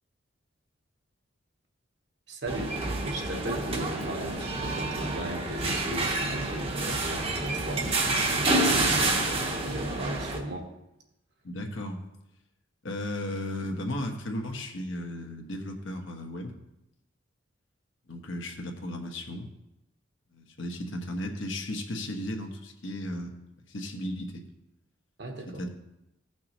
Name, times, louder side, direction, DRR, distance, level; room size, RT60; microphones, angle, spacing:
voice 1, 2.3-2.8 3.0-10.7 25.2-25.6, right 1 dB, 55° right, 3 dB, 1.2 m, -37 dB
sound 1, 2.5-10.4, right 2 dB, 30° right, 0.9 m, -28 dB
voice 2, 11.4-12.0 12.8-16.5 18.1-19.5 20.3-23.3 23.7-24.4 25.6-25.7, left 1 dB, 70° left, 2 dB, 1.2 m, -35 dB
15.5 x 6.0 x 3.0 m, 0.88 s
head